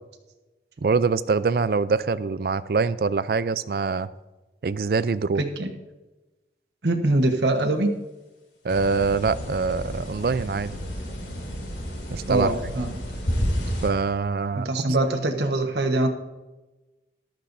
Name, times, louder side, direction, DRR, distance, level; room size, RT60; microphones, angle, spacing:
voice 1, 0.8-4.1 4.6-5.4 8.6-10.8 12.1-12.5 13.8-15.1, right 4 dB, 55° right, 16 dB, 0.4 m, -24 dB
voice 2, 5.4-5.7 6.8-7.9 12.3-13.0 14.5-16.1, right 2 dB, 75° right, 5 dB, 1.2 m, -23 dB
sound 1, 8.7-13.9, equal, 85° left, 2.7 m, -31 dB
14.0 x 12.0 x 2.7 m, 1.1 s
head